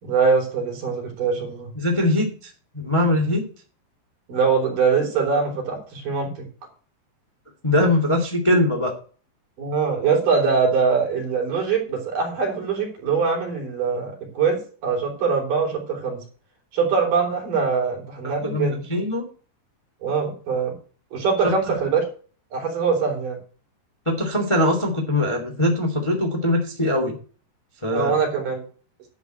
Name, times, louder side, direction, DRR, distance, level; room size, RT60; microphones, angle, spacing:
voice 1, 0.0-1.7 4.3-6.3 9.6-16.2 16.7-18.8 20.0-20.7 21.1-22.0 22.5-23.4 27.9-28.6, right 5 dB, 50° right, 0 dB, 4.8 m, -23 dB
voice 2, 1.7-3.5 7.6-8.9 18.2-19.2 21.4-21.5 24.0-27.1 27.8-28.1, left 1 dB, 15° left, 2 dB, 1.1 m, -22 dB
11.0 x 4.9 x 8.1 m, 0.39 s
omnidirectional pair, 5.1 m